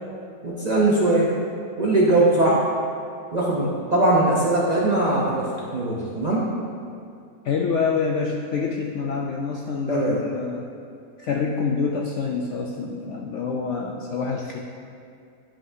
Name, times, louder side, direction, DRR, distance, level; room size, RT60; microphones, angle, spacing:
voice 1, 0.4-1.3 1.8-2.6 3.3-6.5 9.9-10.2, right 2 dB, 40° right, -5 dB, 0.6 m, -20 dB
voice 2, 7.4-10.7 11.2-14.6, left 5 dB, 70° left, -1 dB, 0.7 m, -26 dB
9.8 x 5.6 x 2.7 m, 2.4 s
omnidirectional pair, 1.7 m